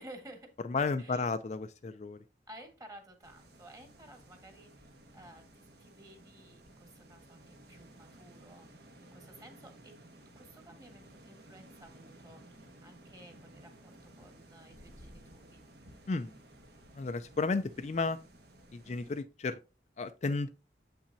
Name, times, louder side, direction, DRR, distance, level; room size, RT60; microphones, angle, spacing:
voice 1, 0.0-0.5 1.0-1.3 2.5-9.9 10.3-15.6 18.8-19.1, right 1 dB, 20° right, 1.5 m, -54 dB
voice 2, 0.6-2.2 16.1-16.3 16.9-18.2 18.7-19.6 20.0-20.5, left 3 dB, 40° left, 0.4 m, -33 dB
sound 1, 3.2-19.2, right 1 dB, 65° right, 1.3 m, -56 dB
7.7 x 5.8 x 2.7 m
head